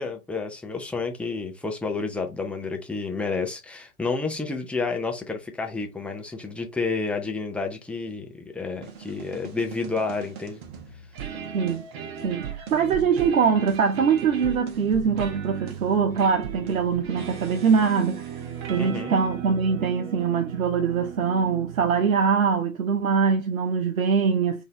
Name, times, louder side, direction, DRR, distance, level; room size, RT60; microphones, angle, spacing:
voice 1, 0.0-10.6 18.8-19.2, left 4 dB, 5° left, 0.5 m, -30 dB
sound 1, 8.8-22.3, right 8 dB, 45° right, 1.2 m, -37 dB
voice 2, 11.5-11.9 12.2-18.4 18.7-24.6, right 6 dB, 75° right, 0.7 m, -23 dB
3.8 x 2.7 x 4.2 m
figure-of-eight pair, 105°, 42 cm